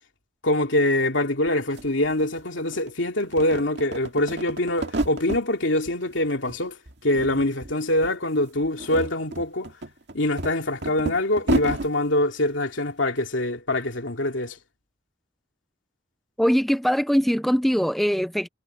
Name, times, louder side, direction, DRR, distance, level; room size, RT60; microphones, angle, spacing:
voice 1, 0.4-6.8 7.0-9.7 10.1-14.6, left 1 dB, 90° left, 2.7 m, -24 dB
sound 1, 1.5-1.6 1.8-2.9 3.2-5.5 5.9-6.6 6.9-7.7 8.0-8.1 8.6-11.9, right 2 dB, 65° right, 2.0 m, -31 dB
voice 2, 16.4-18.5, equal, ahead, 0.4 m, -21 dB
head